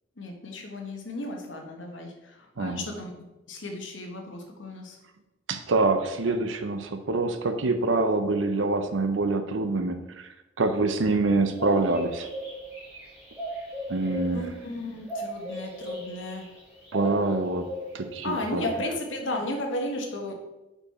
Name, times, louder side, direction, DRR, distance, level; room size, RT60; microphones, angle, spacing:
voice 1, 0.2-2.1 2.6-3.1 3.5-4.9 14.3-16.5 18.2-20.3, left 1 dB, 75° left, 2 dB, 1.1 m, -34 dB
voice 2, 2.6-2.9 5.5-10.3 10.6-12.3 13.9-14.5 16.9-17.7 17.9-18.9, right 3 dB, 85° right, 9 dB, 0.6 m, -26 dB
sound 1, 11.5-18.9, right 1 dB, 5° right, 2.0 m, -37 dB
5.3 x 4.6 x 4.2 m, 1.0 s
head